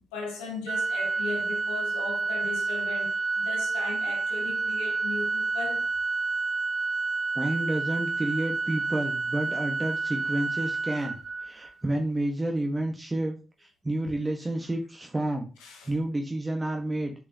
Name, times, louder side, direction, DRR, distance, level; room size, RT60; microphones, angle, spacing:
voice 1, 0.1-5.9 15.6-15.9, left 4 dB, 90° left, 1.9 m, -37 dB
Organ, 0.7-11.7, right 3 dB, 55° right, 0.8 m, -29 dB
voice 2, 7.3-11.2 11.4-15.5 15.9-17.1, right 1 dB, 25° right, 1.6 m, -30 dB
8.8 x 4.8 x 3.0 m
hypercardioid pair, 45°, 0 cm